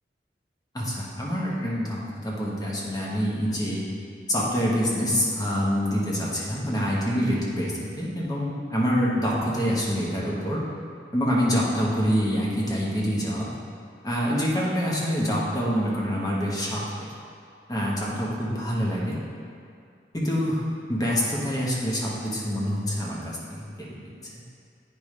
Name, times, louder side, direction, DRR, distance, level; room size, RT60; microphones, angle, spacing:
voice 1, 0.7-3.8 4.3-10.6 11.1-13.5 14.0-16.8 17.7-19.2 20.1-20.6 20.9-24.1, equal, 20° left, -5 dB, 1.1 m, -26 dB
9.1 x 5.0 x 3.3 m, 2.4 s
head